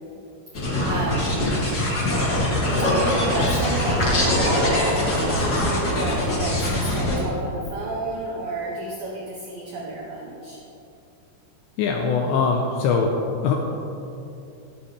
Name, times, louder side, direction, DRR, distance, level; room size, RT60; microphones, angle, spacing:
sound 1, 0.5-7.2, left 1 dB, 50° left, 1.2 m, -22 dB
voice 1, 0.8-1.4 2.7-10.6, right 2 dB, 90° right, -3 dB, 2.0 m, -31 dB
voice 2, 11.8-13.6, left 5 dB, 85° left, 1 dB, 2.6 m, -22 dB
12.5 x 12.0 x 3.3 m, 2.7 s
omnidirectional pair, 5.9 m